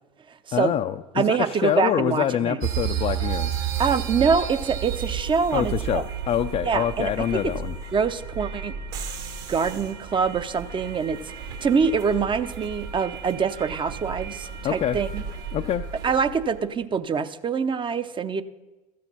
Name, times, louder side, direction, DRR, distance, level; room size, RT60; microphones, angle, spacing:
voice 1, 0.5-3.5 5.5-7.8 14.6-15.0 15.5-15.9, left 10 dB, 30° left, 7 dB, 0.4 m, -25 dB
voice 2, 1.2-2.6 3.8-6.0 6.6-7.4 7.9-8.7 9.5-15.2 16.0-18.4, right 6 dB, 25° right, 12 dB, 0.6 m, -25 dB
sound 1, 2.6-16.6, right 8 dB, 60° right, 1.8 m, -32 dB
13.5 x 6.3 x 5.6 m, 1.1 s
figure-of-eight pair, 75°, 20 cm